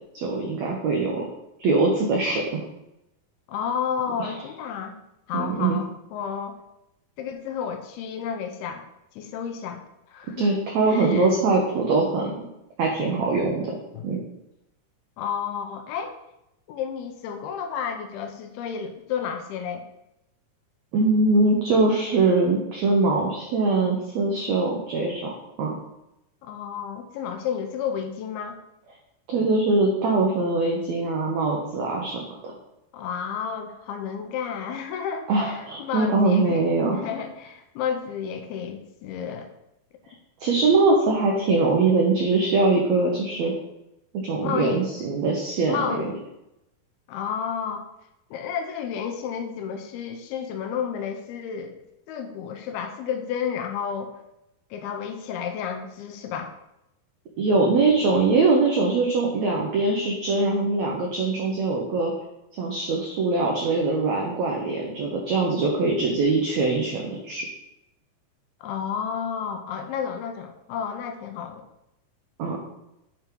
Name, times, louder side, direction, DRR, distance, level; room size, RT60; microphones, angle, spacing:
voice 1, 0.1-1.2 1.6-2.6 4.2-4.3 5.3-5.8 10.4-12.4 12.8-13.8 14.0-14.2 20.9-25.3 25.6-25.7 29.3-32.5 35.3-37.1 40.4-43.5 44.1-45.9 57.4-62.1 62.6-67.5 72.4-72.6, right 3 dB, 85° right, -1 dB, 1.5 m, -22 dB
voice 2, 3.5-5.0 5.3-6.6 7.2-8.8 9.1-9.8 10.1-10.5 10.8-11.4 13.9-14.1 15.2-16.2 16.7-19.9 26.4-28.6 32.9-39.5 44.4-44.9 45.7-46.2 47.1-47.8 48.3-51.8 52.1-54.2 54.7-56.5 68.6-71.6, left 7 dB, 85° left, 6 dB, 2.6 m, -31 dB
9.1 x 4.5 x 3.8 m, 0.87 s
omnidirectional pair, 4.5 m